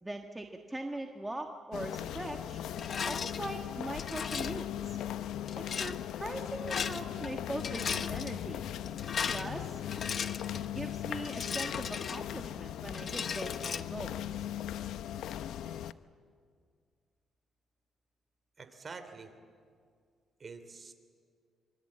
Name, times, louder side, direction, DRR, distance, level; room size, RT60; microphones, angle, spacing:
voice 1, 0.0-2.6 3.0-5.0 5.5-8.6 9.3-9.8 10.7-14.2, right 1 dB, 10° right, 3 dB, 1.5 m, -41 dB
sound 1, 1.7-15.9, left 11 dB, 80° left, 0.7 m, -38 dB
Rattle, 2.8-3.4 4.0-4.6 5.5-6.0 6.6-7.3 7.5-8.3 8.9-10.7 11.2-12.5 12.9-13.8, left 6 dB, 50° left, 1.0 m, -37 dB
voice 2, 18.6-19.3 20.4-20.9, right 4 dB, 35° right, 9 dB, 3.1 m, -46 dB
25.0 x 24.5 x 8.6 m, 2.1 s
cardioid pair, 90°, 0 cm